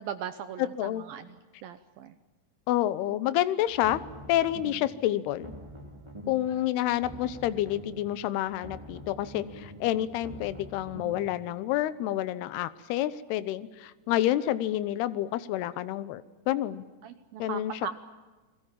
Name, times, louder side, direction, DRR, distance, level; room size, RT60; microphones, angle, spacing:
voice 1, 0.0-1.4 1.6-2.1 17.0-17.9, right 9 dB, 70° right, 10 dB, 2.4 m, -38 dB
voice 2, 0.6-1.0 2.7-4.0 4.3-5.6 6.3-16.8 17.4-17.9, left 13 dB, 75° left, 14 dB, 2.9 m, -29 dB
sound 1, 3.7-5.0 5.3-6.6 6.9-8.2 8.5-11.3, equal, 10° right, 2.3 m, -45 dB
30.0 x 22.0 x 7.5 m, 1.3 s
omnidirectional pair, 4.9 m